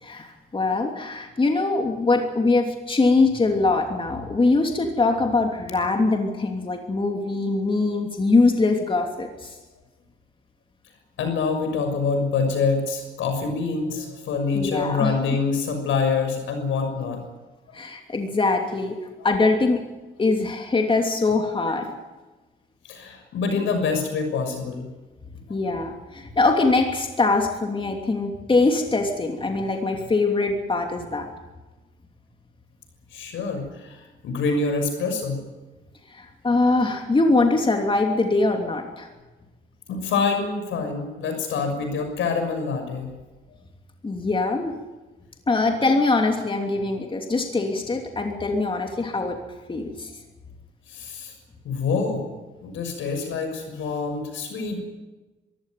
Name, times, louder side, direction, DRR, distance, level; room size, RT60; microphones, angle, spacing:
voice 1, 0.0-9.5 14.5-15.1 17.7-19.0 19.2-19.8 20.2-21.9 25.5-31.3 36.1-39.1 44.0-44.7 45.5-49.4 49.7-50.1, left 3 dB, 25° left, 3 dB, 3.0 m, -22 dB
voice 2, 11.2-17.2 17.7-17.8 22.8-24.9 33.1-35.4 39.9-43.1 50.9-51.3 51.6-52.2 52.6-54.8, left 4 dB, 80° left, 6 dB, 6.4 m, -26 dB
23.0 x 16.0 x 9.3 m, 1.2 s
cardioid pair, 90°, 20 cm